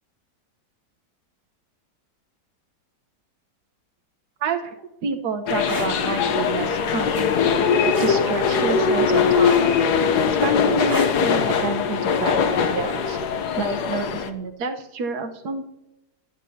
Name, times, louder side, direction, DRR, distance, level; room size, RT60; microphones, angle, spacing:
voice 1, 4.4-4.8 5.0-7.3 8.0-9.7 10.2-13.2 13.6-15.7, right 4 dB, 65° right, 6 dB, 1.6 m, -29 dB
sound 1, 5.5-14.3, left 6 dB, 65° left, 1.4 m, -21 dB
sound 2, 5.6-5.9 7.9-8.2 9.5-9.9 10.9-11.2 12.6-12.8, equal, 10° right, 1.9 m, -29 dB
15.0 x 11.0 x 2.8 m, 0.91 s
omnidirectional pair, 1.9 m